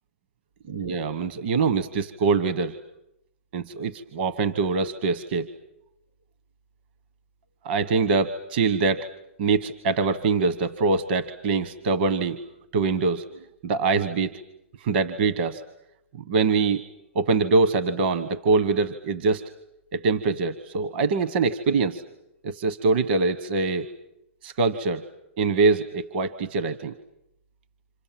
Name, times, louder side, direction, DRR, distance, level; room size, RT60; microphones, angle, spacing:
voice 1, 0.7-2.8 3.5-5.5 7.6-9.1 9.4-12.4 12.7-13.2 13.6-14.4 14.8-15.6 16.3-16.8 17.1-19.4 19.9-22.0 22.4-23.9 24.4-25.0 25.4-26.9, right 4 dB, 50° right, 11 dB, 1.2 m, -24 dB
28.5 x 27.5 x 7.5 m, 0.83 s
hypercardioid pair, 145°, 7 cm